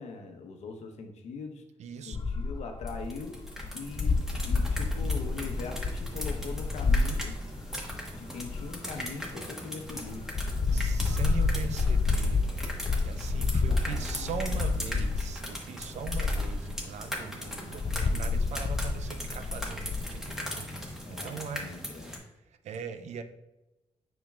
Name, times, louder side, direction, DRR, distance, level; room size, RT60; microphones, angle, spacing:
voice 1, 0.0-1.6 2.0-3.4 3.7-7.3 8.1-10.2 13.7-14.8 17.4-18.8 21.0-22.2, left 4 dB, 90° left, 4 dB, 0.9 m, -42 dB
voice 2, 1.8-2.2 10.7-21.7 22.5-23.2, right 6 dB, 90° right, 9 dB, 0.5 m, -40 dB
sound 1, 2.1-9.3 9.9-15.4 15.8-16.8 17.5-20.3, left 3 dB, 45° left, 0.5 m, -29 dB
sound 2, 2.9-22.2, equal, 5° right, 1.3 m, -40 dB
7.2 x 5.6 x 2.4 m, 1.0 s
cardioid pair, 85°, 11 cm